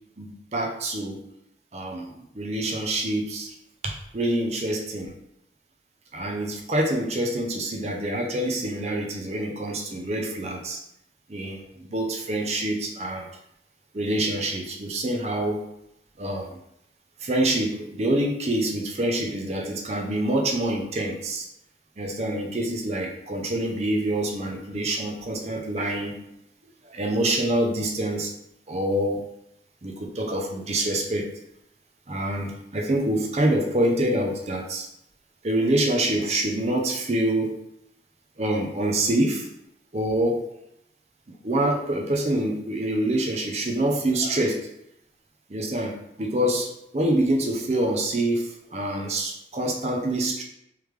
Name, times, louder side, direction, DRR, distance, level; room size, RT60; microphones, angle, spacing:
voice 1, 0.2-1.2 1.7-3.5 3.8-5.1 6.1-10.8 11.3-13.3 13.9-15.6 16.2-16.5 17.2-21.5 22.0-26.2 26.9-28.3 28.7-29.3 29.8-31.3 32.1-34.9 35.4-37.5 38.4-39.5 39.9-40.5 41.4-44.7 45.5-50.4, right 1 dB, 35° right, 1 dB, 0.6 m, -26 dB
3.4 x 3.3 x 3.2 m, 0.79 s
head